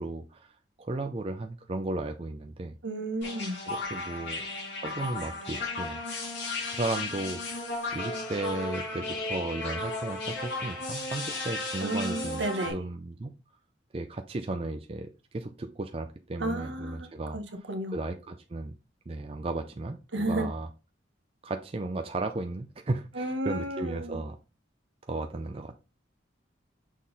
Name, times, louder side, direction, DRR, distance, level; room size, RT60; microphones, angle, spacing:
voice 1, 0.0-2.8 3.6-4.4 4.8-6.0 6.5-13.3 13.9-17.7 17.9-18.7 19.1-20.7 21.4-24.4 25.1-25.8, right 2 dB, 30° right, 0.4 m, -35 dB
voice 2, 2.8-3.6 11.8-12.8 16.4-17.1 17.3-18.0 20.1-20.5 23.1-24.2, right 1 dB, 70° right, 1.1 m, -32 dB
sound 1, 3.2-12.7, left 2 dB, 65° left, 2.4 m, -35 dB
6.4 x 3.8 x 3.9 m
head